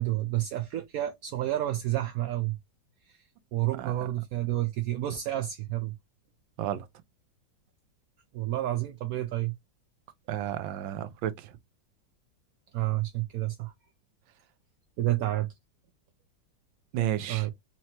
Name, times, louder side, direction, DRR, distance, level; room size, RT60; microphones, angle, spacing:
voice 1, 0.0-2.6 3.0-3.2 3.5-5.9 8.3-9.5 12.7-13.7 15.0-15.5 17.3-17.5, right 15 dB, 70° right, 0.9 m, -30 dB
voice 2, 10.3-11.5 16.9-17.5, right 12 dB, 90° right, 1.4 m, -32 dB
4.4 x 2.9 x 2.8 m
omnidirectional pair, 2.0 m